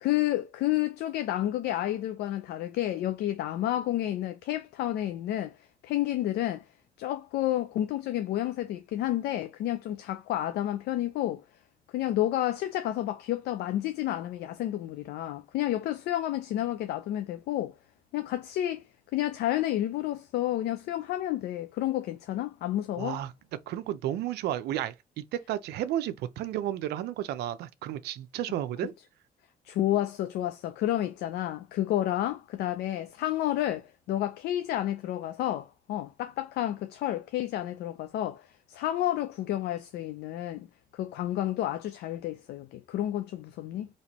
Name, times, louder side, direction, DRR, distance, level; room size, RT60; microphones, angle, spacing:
voice 1, 0.0-5.6 5.8-6.6 7.0-11.4 11.9-17.7 18.1-18.8 19.1-23.2 29.6-40.7 40.9-43.9, left 13 dB, 90° left, 0.4 m, -30 dB
voice 2, 23.0-23.3 23.7-28.9, right 12 dB, 90° right, 0.5 m, -32 dB
4.2 x 3.0 x 2.9 m
cardioid pair, 90°, 16 cm